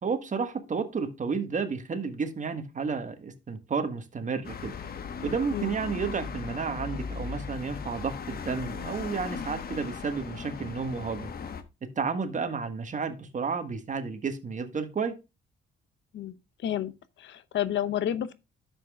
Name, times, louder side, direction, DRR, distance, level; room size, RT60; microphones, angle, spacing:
voice 1, 0.0-4.7 5.2-11.3 11.8-15.2, right 5 dB, 40° right, 1.4 m, -31 dB
sound 1, 4.4-11.6, left 6 dB, 50° left, 1.2 m, -38 dB
voice 2, 16.1-16.9 17.2-18.3, left 11 dB, 70° left, 0.8 m, -30 dB
10.5 x 7.3 x 2.3 m
cardioid pair, 90°, 20 cm